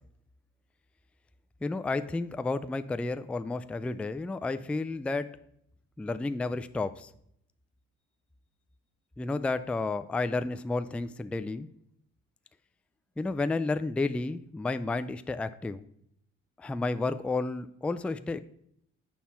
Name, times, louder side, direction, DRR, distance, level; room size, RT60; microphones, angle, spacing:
voice 1, 1.6-5.3 6.0-7.1 9.2-11.7 13.2-15.8 16.6-18.4, left 3 dB, 5° left, 12 dB, 0.3 m, -31 dB
7.5 x 5.7 x 4.2 m, 0.71 s
cardioid pair, 90°, 30 cm